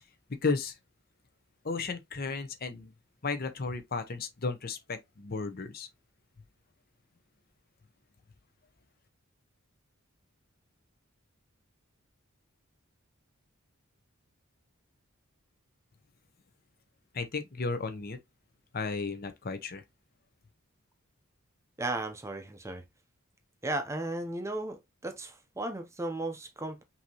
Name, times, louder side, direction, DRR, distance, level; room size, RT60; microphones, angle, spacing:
voice 1, 0.3-0.8 1.6-2.9 3.2-5.9 17.1-18.2 18.7-19.8, left 4 dB, 45° left, 0.8 m, -34 dB
voice 2, 21.8-22.8 23.6-26.8, right 2 dB, 15° right, 0.6 m, -35 dB
5.7 x 2.8 x 2.8 m
head